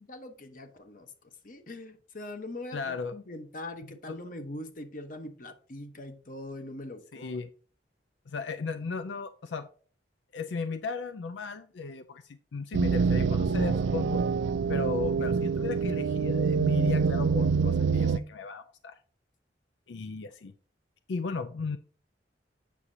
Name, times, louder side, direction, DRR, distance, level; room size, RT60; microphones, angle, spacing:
voice 1, 0.1-1.1 1.4-7.4, left 1 dB, 45° left, 0.9 m, -42 dB
voice 2, 2.7-3.1 4.1-4.2 7.1-7.5 8.3-9.7 10.3-14.2 14.7-19.0 19.9-20.5 21.1-21.8, left 4 dB, 80° left, 0.4 m, -36 dB
sound 1, 12.7-18.2, right 5 dB, 80° right, 0.4 m, -26 dB
8.2 x 6.0 x 2.7 m
head